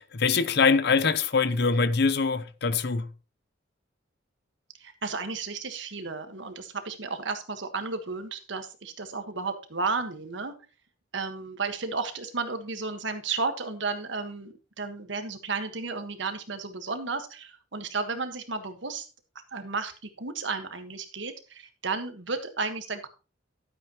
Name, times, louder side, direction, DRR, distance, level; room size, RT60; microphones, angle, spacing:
voice 1, 0.0-3.1, left 4 dB, 60° left, 0.7 m, -23 dB
voice 2, 4.8-10.5 11.1-19.1 19.5-23.1, right 4 dB, 70° right, 1.5 m, -33 dB
12.5 x 8.3 x 3.0 m
head